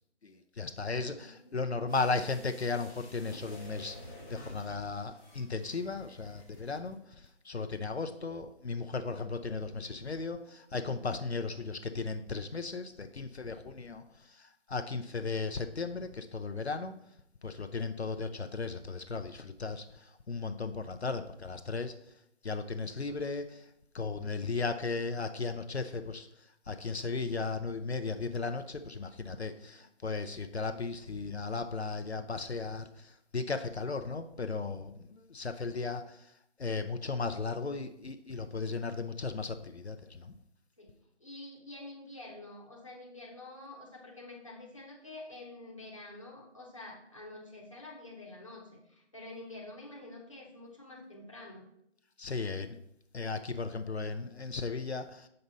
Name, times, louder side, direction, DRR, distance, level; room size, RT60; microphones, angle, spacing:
voice 1, 0.2-17.0 17.4-22.0 22.4-23.7 23.9-26.3 26.7-36.3 36.6-40.3 52.2-52.8 53.1-55.3, left 4 dB, 60° left, 7 dB, 0.7 m, -36 dB
voice 2, 1.2-1.6 40.8-40.9 41.2-51.7, left 2 dB, 25° left, -2 dB, 1.2 m, -48 dB
sound 1, 1.9-6.9 7.2-7.3, left 1 dB, 15° right, 1.4 m, -51 dB
7.7 x 5.4 x 4.0 m, 0.76 s
figure-of-eight pair, 180°, 36 cm